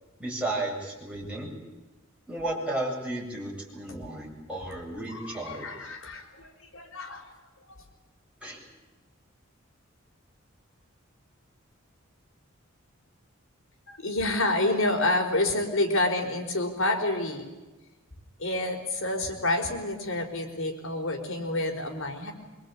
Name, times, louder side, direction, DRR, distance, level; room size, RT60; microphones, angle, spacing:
voice 1, 0.2-1.6 2.3-5.9 8.4-8.6, right 1 dB, 5° right, -3 dB, 7.9 m, -34 dB
voice 2, 5.1-7.2 7.7-7.8 13.9-17.4 18.4-22.3, left 2 dB, 75° left, 3 dB, 4.9 m, -28 dB
25.0 x 24.5 x 8.7 m, 1.1 s
head